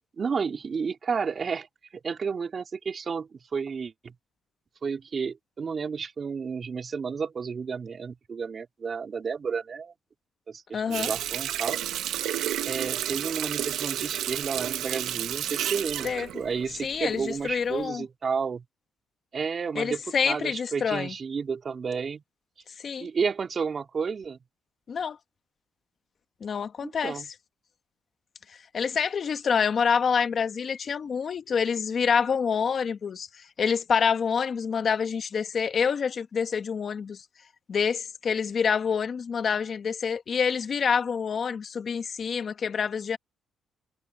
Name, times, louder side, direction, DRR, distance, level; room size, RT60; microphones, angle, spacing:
voice 1, 0.2-1.7 1.9-4.1 4.8-9.9 10.5-11.8 12.6-18.6 19.3-22.2 23.0-24.4 26.8-27.3, right 5 dB, 45° right, 3.2 m, -31 dB
voice 2, 10.7-11.1 16.0-16.3 16.8-18.0 19.7-21.1 22.8-23.1 24.9-25.2 26.4-27.2 28.7-37.2 37.7-43.2, left 6 dB, 50° left, 1.5 m, -27 dB
Water tap faucet, 10.9-17.3 17.7-17.9, right 11 dB, 80° right, 1.3 m, -31 dB
cardioid pair, 90°, 0 cm